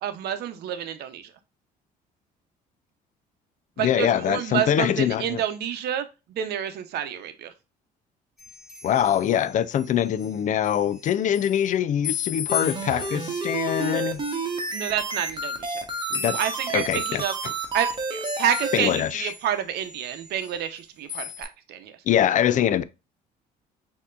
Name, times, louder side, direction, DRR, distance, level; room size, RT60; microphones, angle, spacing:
voice 1, 0.0-1.3 3.8-7.5 14.7-15.9 16.2-17.3 17.7-22.0, right 10 dB, 75° right, 0.8 m, -29 dB
voice 2, 3.8-5.4 8.8-14.2 16.1-16.4 16.7-17.5 18.7-19.3 22.1-22.8, left 10 dB, 50° left, 0.4 m, -23 dB
sound 1, 8.4-10.3 10.6-11.7 12.0-19.5 19.8-20.8 21.1-21.4, left 7 dB, 5° right, 2.8 m, -37 dB
sound 2, 12.5-18.8, right 3 dB, 30° right, 1.2 m, -30 dB
6.5 x 2.9 x 2.5 m
cardioid pair, 110°, 17 cm